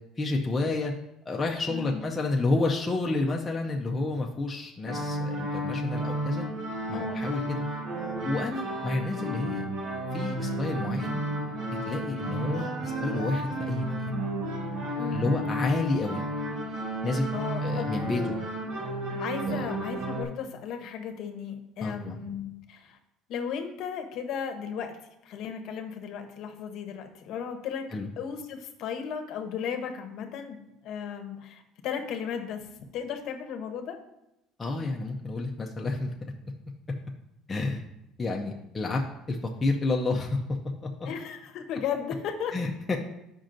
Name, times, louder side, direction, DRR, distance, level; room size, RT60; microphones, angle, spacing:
voice 1, 0.2-0.9 1.3-6.5 6.9-7.6 8.2-9.6 10.1-11.2 11.9-14.1 15.1-16.2 17.0-17.3 17.6-18.3 19.5-19.7 21.8-22.2 27.9-28.1 34.6-36.3 37.5-37.8 38.2-39.0 39.3-40.4 42.5-43.0, left 3 dB, 15° left, -1 dB, 0.5 m, -30 dB
voice 2, 1.7-2.1 6.9-7.2 9.2-9.4 15.0-15.4 17.3-17.9 19.2-23.0 23.3-27.9 28.2-32.7 32.9-34.0 41.0-42.6, left 7 dB, 50° left, 5 dB, 0.8 m, -35 dB
sound 1, 4.9-20.2, right 1 dB, 60° right, 1.2 m, -32 dB
8.8 x 5.2 x 2.5 m, 0.87 s
cardioid pair, 170°, 0 cm